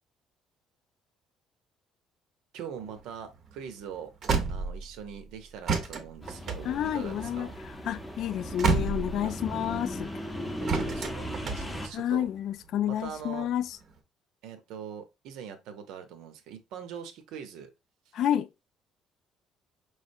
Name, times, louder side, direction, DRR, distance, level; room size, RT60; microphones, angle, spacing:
voice 1, 2.5-4.1 4.5-7.6 9.2-9.4 10.6-12.3 12.9-13.5 14.4-17.7, right 8 dB, 75° right, 0.9 m, -42 dB
sound 1, 2.8-5.2 5.7-9.6 10.7-12.3 12.9-13.8, right 4 dB, 40° right, 0.7 m, -31 dB
sound 2, 6.2-11.9, equal, 5° left, 0.7 m, -37 dB
voice 2, 6.6-7.5 7.8-10.1 11.9-13.8 18.1-18.5, left 11 dB, 55° left, 0.3 m, -30 dB
4.8 x 3.3 x 2.6 m
cardioid pair, 165°, 0 cm